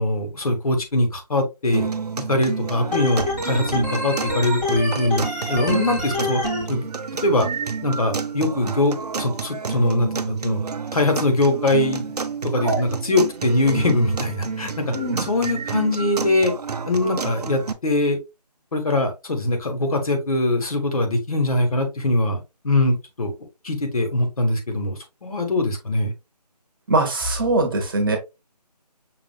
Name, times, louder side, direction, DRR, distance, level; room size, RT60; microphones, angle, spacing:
voice 1, 0.0-1.9 2.3-6.4 6.7-6.9 7.2-7.5 7.8-10.6 10.9-12.1 12.4-14.9 15.2-16.5 16.8-18.2 18.7-23.3 23.6-26.1, left 2 dB, 60° left, 1.3 m, -22 dB
sound 1, 1.7-17.7, right 5 dB, 70° right, 0.6 m, -30 dB
Organ, 2.9-6.6, left 2 dB, 10° left, 1.1 m, -27 dB
voice 2, 14.9-15.2 26.9-28.2, right 2 dB, 30° right, 1.0 m, -22 dB
6.0 x 2.5 x 2.3 m
figure-of-eight pair, 160°, 21 cm